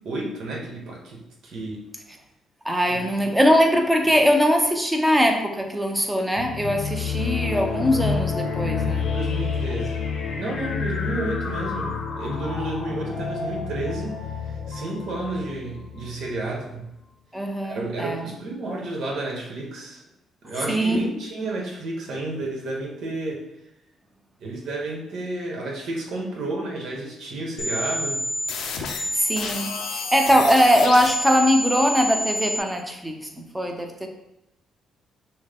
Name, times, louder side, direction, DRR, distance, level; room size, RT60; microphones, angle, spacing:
voice 1, 0.0-1.8 2.9-3.2 9.1-10.1 10.3-16.9 17.6-20.0 20.4-23.5 24.4-28.2, right 2 dB, 70° right, -1 dB, 1.3 m, -31 dB
voice 2, 2.6-9.1 17.3-18.3 20.7-21.1 29.1-34.1, equal, 5° right, 3 dB, 0.7 m, -21 dB
sound 1, 6.4-16.6, left 5 dB, 55° left, 0.8 m, -29 dB
sound 2, 27.6-32.6, left 1 dB, 85° left, 0.7 m, -28 dB
6.1 x 2.2 x 3.6 m, 0.87 s
cardioid pair, 90°, 0 cm